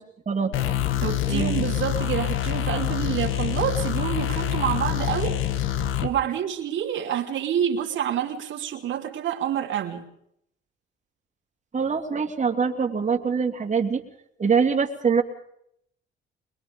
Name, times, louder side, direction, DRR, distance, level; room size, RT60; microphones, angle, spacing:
voice 1, 0.3-0.8 1.3-1.6 11.7-14.0 14.4-15.2, right 5 dB, 35° right, 3 dB, 2.9 m, -24 dB
sound 1, 0.5-6.1, left 12 dB, 90° left, 1.7 m, -26 dB
voice 2, 1.0-5.4 6.0-10.1, right 10 dB, 75° right, 1 dB, 2.8 m, -28 dB
23.0 x 21.5 x 5.3 m, 0.73 s
cardioid pair, 90°, 20 cm